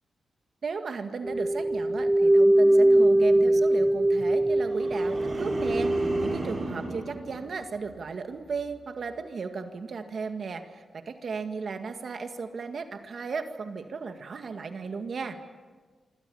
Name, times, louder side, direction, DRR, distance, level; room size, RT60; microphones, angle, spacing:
voice 1, 0.6-15.4, right 5 dB, 65° right, 6 dB, 1.9 m, -35 dB
sound 1, 1.2-6.3, right 1 dB, 10° right, 1.2 m, -22 dB
sound 2, 4.6-8.1 8.5-8.9, right 2 dB, 40° right, 7.6 m, -35 dB
26.0 x 25.0 x 7.1 m, 1.4 s
cardioid pair, 85°, 0 cm